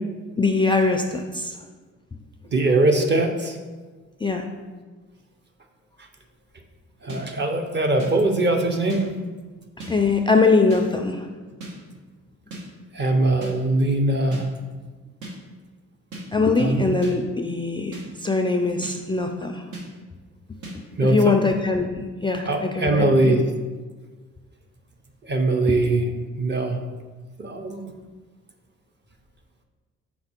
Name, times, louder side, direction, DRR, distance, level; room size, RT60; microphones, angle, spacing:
voice 1, 0.4-1.6 4.2-4.5 9.9-11.3 16.3-19.6 21.0-23.4 25.7-25.8, left 3 dB, 15° left, 4 dB, 0.4 m, -22 dB
voice 2, 2.5-3.6 7.0-9.1 12.9-14.5 16.6-16.9 21.0-21.4 22.4-23.4 25.2-26.1 26.4-26.8 27.4-27.9, right 2 dB, 35° right, 4 dB, 0.8 m, -21 dB
sound 1, 7.1-7.2 8.0-8.1 8.9-9.0 9.8-9.9 10.7-10.8 11.6-11.7 12.5-12.6 13.4-13.5 14.3-14.4 15.2-15.3 16.1-16.2 17.0-17.1 17.9-18.0 18.8-18.9 19.7-19.8 20.6-20.7, right 2 dB, 80° right, 1.5 m, -35 dB
5.9 x 4.1 x 4.4 m, 1.4 s
cardioid pair, 90°, 30 cm